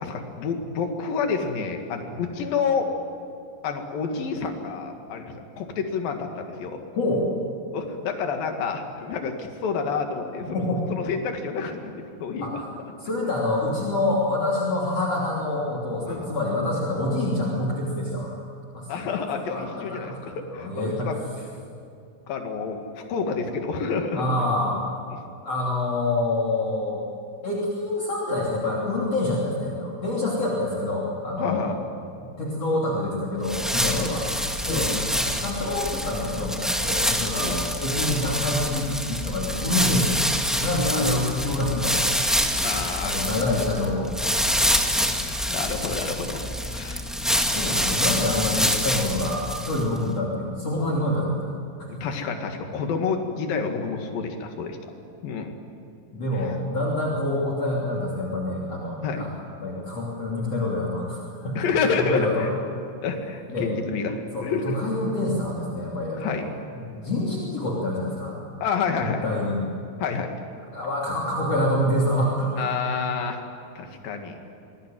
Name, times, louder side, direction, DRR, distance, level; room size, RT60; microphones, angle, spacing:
voice 1, 0.0-2.9 3.6-6.8 7.7-10.6 10.9-11.9 12.2-12.5 16.1-16.3 18.9-21.2 22.3-24.2 31.4-31.8 33.9-34.1 34.7-35.1 37.4-37.6 40.8-41.2 42.6-43.2 44.6-44.7 45.1-47.1 47.5-47.9 52.0-54.8 55.2-55.5 56.3-56.6 59.0-59.2 61.6-62.5 63.0-64.8 66.2-66.5 68.6-69.3 70.0-70.3 72.6-73.4 73.8-74.4, left 5 dB, 85° left, 4 dB, 3.7 m, -29 dB
voice 2, 6.9-7.2 10.5-10.8 12.4-12.6 13.0-18.4 18.7-20.2 20.5-21.1 24.1-24.8 25.4-27.0 27.4-31.7 32.2-34.3 34.6-34.9 35.2-40.2 40.6-42.1 43.0-44.1 47.5-51.5 51.8-51.9 56.1-59.3 59.6-61.6 61.9-62.4 63.5-63.7 64.3-68.4 69.0-69.6 70.7-72.5, left 1 dB, 45° left, -4 dB, 3.9 m, -26 dB
sound 1, 33.4-50.0, equal, ahead, 0.6 m, -26 dB
26.5 x 20.5 x 9.2 m, 2.4 s
omnidirectional pair, 4.0 m